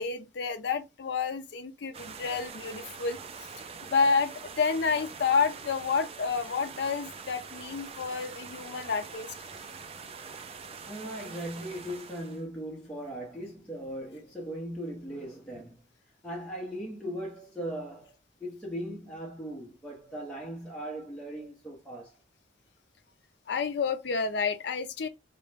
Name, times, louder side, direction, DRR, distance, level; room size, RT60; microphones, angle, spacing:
voice 1, 0.0-3.5 3.8-9.3 23.5-25.1, left 5 dB, 60° left, 0.4 m, -29 dB
sound 1, 1.9-12.4, right 5 dB, 30° right, 0.3 m, -44 dB
voice 2, 10.9-15.8 16.2-18.1 18.4-22.2, equal, 5° left, 0.8 m, -38 dB
3.7 x 2.1 x 3.3 m
head